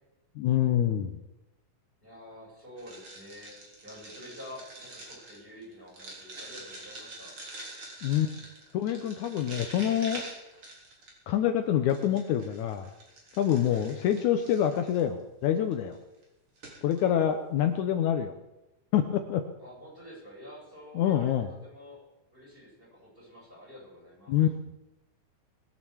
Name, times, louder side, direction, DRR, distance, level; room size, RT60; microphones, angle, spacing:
voice 1, 0.4-1.1 8.0-8.3 8.7-10.2 11.3-12.9 13.4-16.0 16.8-18.3 18.9-19.4 21.0-21.5 24.3-24.6, left 10 dB, 75° left, 7 dB, 2.2 m, -26 dB
voice 2, 2.0-7.3 13.6-13.9 19.6-22.0 22.3-24.4, left 1 dB, 15° right, -4 dB, 8.0 m, -48 dB
sound 1, 2.8-11.3 11.9-15.0 15.7-15.9 16.2-16.3 16.6-17.0, right 2 dB, 45° right, 4.3 m, -45 dB
20.5 x 8.6 x 7.2 m, 0.95 s
omnidirectional pair, 3.6 m